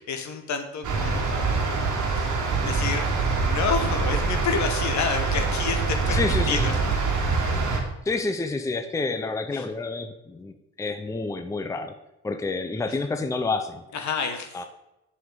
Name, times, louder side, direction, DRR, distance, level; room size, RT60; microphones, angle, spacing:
voice 1, 0.0-1.7 2.2-2.3 2.6-3.1 3.4-7.0 9.5-9.7 13.9-14.6, left 6 dB, 65° left, 6 dB, 1.1 m, -29 dB
sound 1, 0.8-7.8, right 4 dB, 80° right, 1.6 m, -25 dB
voice 2, 6.1-6.7 8.1-11.9 12.2-13.8 14.5-14.6, left 3 dB, 10° left, 7 dB, 0.5 m, -29 dB
7.4 x 5.6 x 3.9 m, 0.91 s
cardioid pair, 90°, 30 cm